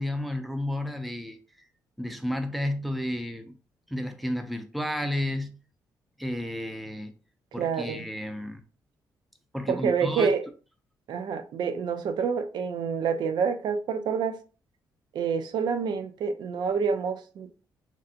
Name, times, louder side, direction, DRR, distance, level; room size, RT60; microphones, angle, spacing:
voice 1, 0.0-1.4 2.0-3.6 3.9-5.6 6.2-7.1 7.5-8.6 9.5-10.4, left 1 dB, ahead, 0.5 m, -32 dB
voice 2, 7.6-8.1 9.7-10.4 11.1-14.4 15.1-17.6, right 6 dB, 70° right, 0.4 m, -28 dB
3.2 x 2.5 x 2.7 m
cardioid pair, 100°, 8 cm